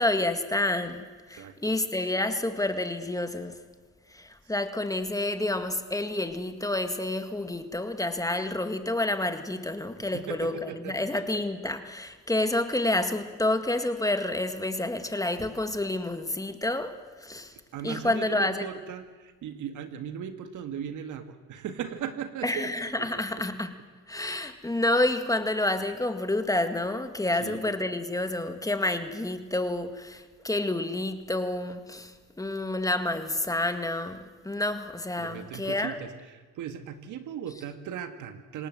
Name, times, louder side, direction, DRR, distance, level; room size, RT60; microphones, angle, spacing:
voice 1, 0.0-3.6 4.1-17.6 17.8-18.7 22.4-23.7 24.1-36.0, left 2 dB, 10° left, 8 dB, 2.0 m, -29 dB
voice 2, 1.3-1.7 10.1-11.0 17.7-22.7 23.0-23.2 27.4-27.6 35.2-38.7, right 8 dB, 80° right, 8 dB, 2.0 m, -38 dB
27.0 x 18.5 x 7.9 m, 1.4 s
cardioid pair, 90°, 30 cm